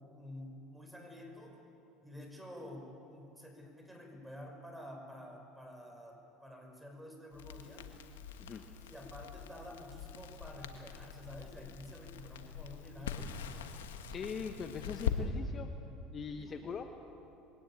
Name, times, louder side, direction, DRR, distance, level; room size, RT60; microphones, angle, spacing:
voice 1, 0.1-1.6 2.0-7.9 8.8-13.6 16.3-16.8, left 1 dB, 5° right, 2 dB, 5.7 m, -50 dB
Crackle, 7.3-15.2, left 8 dB, 90° left, 1.4 m, -43 dB
voice 2, 14.1-15.7 16.1-16.9, left 6 dB, 40° left, 6 dB, 1.3 m, -41 dB
22.0 x 18.0 x 8.9 m, 2.8 s
hypercardioid pair, 85°, 0 cm